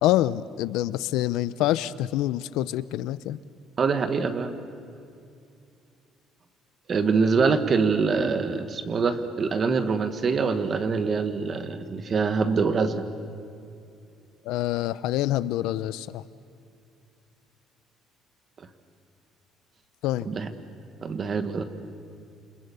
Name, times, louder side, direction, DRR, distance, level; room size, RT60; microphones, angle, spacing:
voice 1, 0.0-3.4 14.4-16.2 20.0-20.3, left 14 dB, 75° left, 16 dB, 0.7 m, -26 dB
voice 2, 3.8-4.5 6.9-13.0 18.6-18.7 20.2-20.5 21.0-21.6, right 5 dB, 30° right, 9 dB, 1.5 m, -24 dB
29.0 x 26.0 x 7.0 m, 2.5 s
cardioid pair, 170°, 0 cm